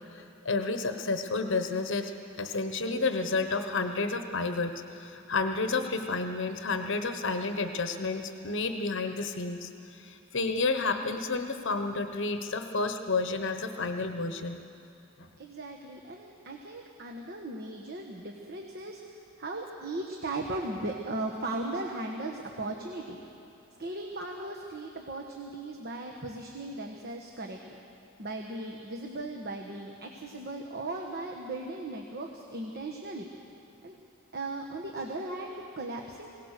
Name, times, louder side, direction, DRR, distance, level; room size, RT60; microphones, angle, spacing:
voice 1, 0.1-2.1 2.4-14.6 15.2-15.3, left 3 dB, 65° left, 7 dB, 1.0 m, -31 dB
voice 2, 15.4-19.0 19.4-23.2 23.8-27.8 28.2-33.3 33.8-34.0 34.3-36.3, right 2 dB, 50° right, 1 dB, 1.3 m, -37 dB
21.5 x 18.0 x 6.7 m, 2.7 s
head